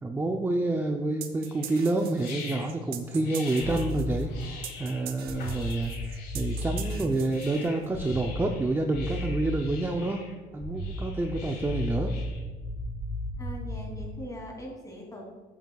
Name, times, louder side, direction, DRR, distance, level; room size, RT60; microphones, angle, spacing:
voice 1, 0.0-5.9 6.3-10.2 10.5-12.1, right 2 dB, 15° right, 3 dB, 0.6 m, -28 dB
sound 1, 1.2-7.9, right 10 dB, 65° right, 0.8 m, -43 dB
sound 2, 1.4-12.4, left 5 dB, 75° left, 2.7 m, -45 dB
sound 3, 3.6-4.6 5.2-7.2 7.9-8.7 8.9-9.9 10.6-14.2, left 1 dB, 35° left, 2.2 m, -34 dB
voice 2, 13.4-15.2, equal, 20° left, -1 dB, 2.9 m, -41 dB
12.0 x 7.7 x 2.4 m, 1.3 s
cardioid pair, 110°, 17 cm